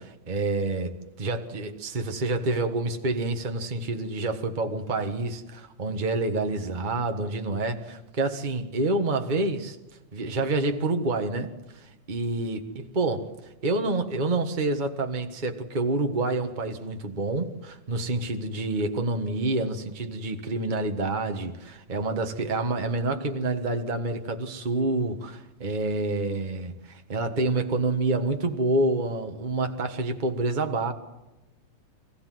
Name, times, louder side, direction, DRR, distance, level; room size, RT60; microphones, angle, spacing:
voice 1, 0.0-9.8 10.1-11.5 12.1-12.6 13.0-13.2 13.6-30.9, right 2 dB, 80° right, 0.4 m, -28 dB
25.0 x 16.0 x 7.7 m
omnidirectional pair, 3.6 m